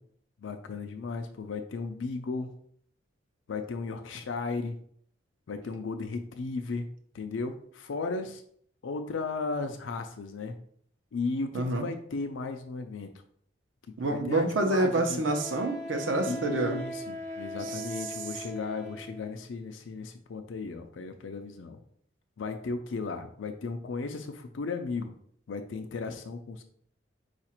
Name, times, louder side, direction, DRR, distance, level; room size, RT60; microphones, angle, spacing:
voice 1, 0.4-2.5 3.5-4.8 5.5-6.9 7.1-8.4 8.8-10.6 11.1-13.1 14.1-15.2 16.3-21.8 22.4-25.1 25.5-26.6, left 4 dB, 85° left, 6 dB, 0.4 m, -35 dB
voice 2, 11.5-11.9 14.0-16.8 17.6-17.8, right 2 dB, 85° right, 5 dB, 0.7 m, -27 dB
Wind instrument woodwind instrument, 14.0-14.1 15.3-19.3, equal, 40° right, 0.8 m, -39 dB
4.8 x 2.5 x 4.3 m, 0.63 s
head